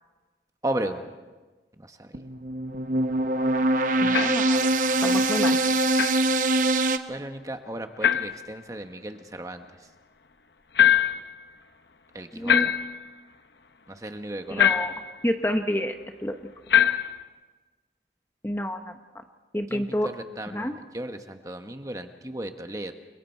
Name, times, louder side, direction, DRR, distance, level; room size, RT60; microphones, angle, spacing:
voice 1, 0.6-1.1 1.8-2.1 7.1-9.9 12.1-12.7 13.9-14.8 19.7-22.9, right 1 dB, 20° right, 6 dB, 1.2 m, -35 dB
sound 1, 2.1-7.0, right 2 dB, 45° right, 1.0 m, -23 dB
voice 2, 4.0-4.6 5.0-5.6 12.3-12.7 14.5-14.9 15.2-15.9 16.2-16.5 18.4-18.9 19.5-20.1 20.5-20.7, left 1 dB, 15° left, 5 dB, 0.9 m, -28 dB
sound 2, 4.1-4.5 6.0-6.2 8.0-8.4 10.8-11.3 12.5-13.1 14.6-15.1 16.7-17.2, left 9 dB, 70° left, 0.9 m, -22 dB
29.5 x 22.5 x 4.5 m, 1.3 s
head